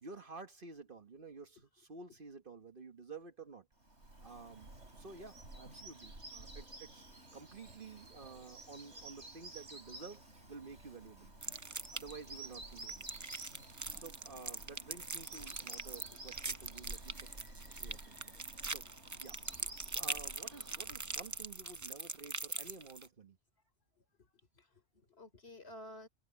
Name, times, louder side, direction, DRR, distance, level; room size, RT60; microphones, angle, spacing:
voice 1, 0.0-3.7 4.2-7.0 7.3-10.2 10.5-11.3 11.9-13.2 13.9-17.3 17.8-18.3 18.7-18.9 19.2-19.4 19.9-23.4, right 4 dB, 50° right, 1.4 m, -51 dB
Bird vocalization bird call bird song, 3.8-21.8, right 2 dB, 70° right, 5.5 m, -52 dB
sound 1, 4.3-19.1, equal, 5° right, 4.2 m, -70 dB
sound 2, 11.4-12.3 12.7-23.1, right 3 dB, 20° right, 0.5 m, -42 dB
voice 2, 24.5-26.1, left 1 dB, 60° left, 3.6 m, -53 dB
omnidirectional pair, 1.2 m